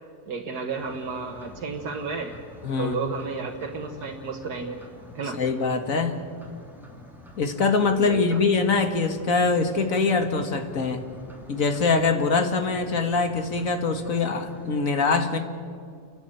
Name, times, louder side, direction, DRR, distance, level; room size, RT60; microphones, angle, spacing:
voice 1, 0.3-2.3 2.8-4.8 5.2-5.4 8.0-8.4, right 4 dB, 80° right, 2 dB, 1.8 m, -32 dB
sound 1, 0.8-14.7, left 1 dB, ahead, 2.9 m, -47 dB
voice 2, 2.6-3.0 5.4-6.2 7.4-11.1 11.5-15.4, left 4 dB, 60° left, 7 dB, 2.1 m, -23 dB
29.5 x 11.5 x 9.0 m, 2.3 s
omnidirectional pair, 1.7 m